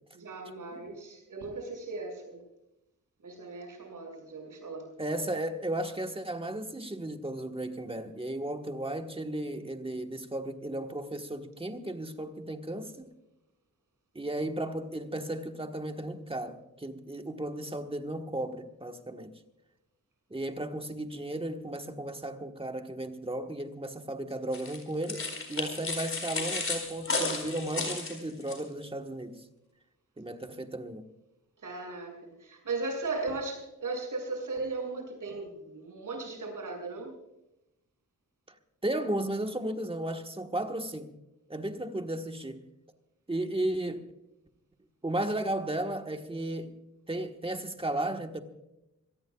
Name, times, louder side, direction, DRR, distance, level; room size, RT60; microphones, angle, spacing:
voice 1, 0.1-2.4 3.2-4.9 31.6-37.2, right 3 dB, 85° right, 6.7 m, -37 dB
voice 2, 5.0-13.2 14.1-19.3 20.3-29.4 30.2-31.0 38.8-41.1 41.5-42.6 43.3-44.0 45.0-46.8 47.1-48.4, right 1 dB, 15° right, 1.3 m, -34 dB
sound 1, 24.5-28.6, left 3 dB, 45° left, 4.4 m, -33 dB
25.5 x 18.5 x 2.4 m
wide cardioid pair, 145°, 31 cm